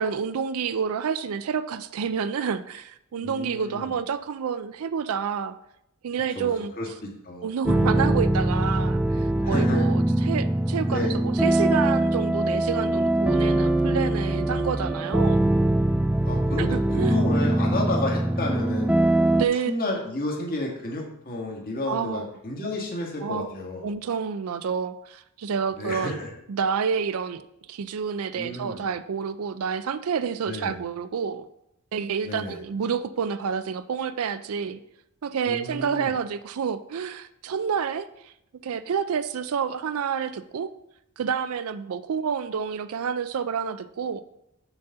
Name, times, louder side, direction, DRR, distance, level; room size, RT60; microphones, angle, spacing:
voice 1, 0.0-5.5 6.0-6.7 7.4-15.4 16.6-17.1 19.3-19.7 21.9-22.3 23.2-23.5 23.8-26.2 26.5-31.5 31.9-34.8 35.2-38.3 38.6-40.7 41.2-44.2, right 6 dB, 70° right, 12 dB, 0.4 m, -29 dB
voice 2, 3.1-4.0 6.3-6.5 6.8-6.9 7.2-7.5 9.4-9.8 10.9-11.2 16.2-19.0 19.7-23.9 25.7-26.3 28.4-28.8 30.5-30.8 32.2-32.6 35.5-36.1, left 1 dB, 45° left, 0 dB, 2.0 m, -31 dB
sound 1, 7.6-19.5, right 1 dB, 5° right, 0.4 m, -22 dB
7.0 x 4.2 x 6.6 m, 0.82 s
head